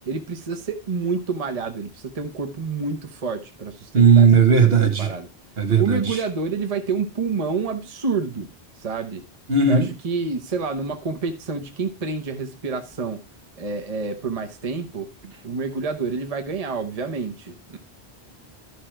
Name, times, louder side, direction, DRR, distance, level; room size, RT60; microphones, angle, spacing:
voice 1, 0.1-4.3 5.0-5.3 5.8-8.5 8.8-9.2 9.7-13.2 13.6-15.1 15.4-17.8, right 4 dB, 35° right, 1.0 m, -28 dB
voice 2, 3.9-5.1 5.6-6.2 9.5-9.9, right 6 dB, 65° right, 1.6 m, -16 dB
12.5 x 5.0 x 4.4 m
omnidirectional pair, 1.1 m